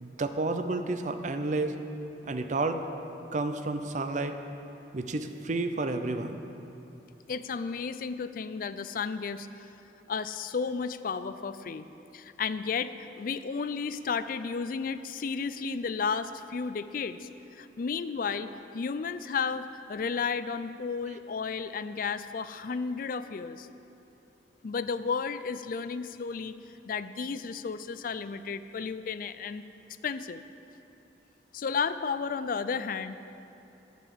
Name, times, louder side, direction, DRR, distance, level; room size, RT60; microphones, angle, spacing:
voice 1, 0.0-1.7 2.2-2.8 3.3-4.4 4.9-6.4, right 2 dB, 45° right, 8 dB, 0.6 m, -31 dB
voice 2, 7.3-9.7 10.1-11.9 12.1-23.7 24.6-26.5 26.8-29.6 30.0-30.4 31.5-33.2, left 5 dB, 50° left, 12 dB, 0.4 m, -33 dB
9.1 x 8.2 x 7.6 m, 2.9 s
head